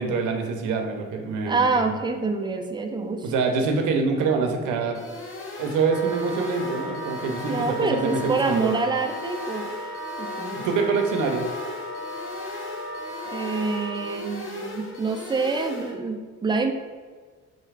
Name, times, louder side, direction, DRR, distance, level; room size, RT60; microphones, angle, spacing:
voice 1, 0.0-1.7 3.2-5.0 5.6-8.7 10.6-11.4, right 4 dB, 85° right, 4 dB, 0.6 m, -25 dB
voice 2, 1.5-3.3 7.4-9.9 10.2-10.7 13.3-16.7, right 4 dB, 15° right, 5 dB, 0.3 m, -26 dB
sound 1, 4.9-15.9, left 2 dB, 45° left, 0.7 m, -38 dB
Wind instrument woodwind instrument, 5.9-14.2, equal, 85° left, 1.1 m, -36 dB
3.9 x 2.3 x 3.2 m, 1.5 s
cardioid pair, 90°, 30 cm